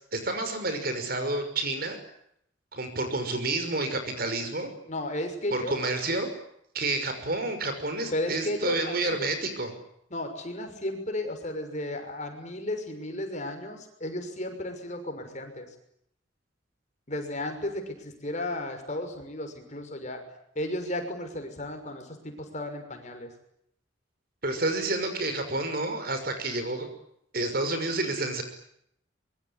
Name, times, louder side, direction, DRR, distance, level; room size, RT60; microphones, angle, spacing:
voice 1, 0.1-2.0 2.7-4.7 5.5-6.3 6.7-9.7 24.4-26.9 27.3-28.4, right 2 dB, 50° right, 8 dB, 5.9 m, -29 dB
voice 2, 4.8-5.8 8.1-9.3 10.1-15.7 17.1-20.2 20.5-23.3, left 1 dB, 40° left, 6 dB, 6.2 m, -34 dB
25.0 x 23.5 x 9.9 m, 0.73 s
head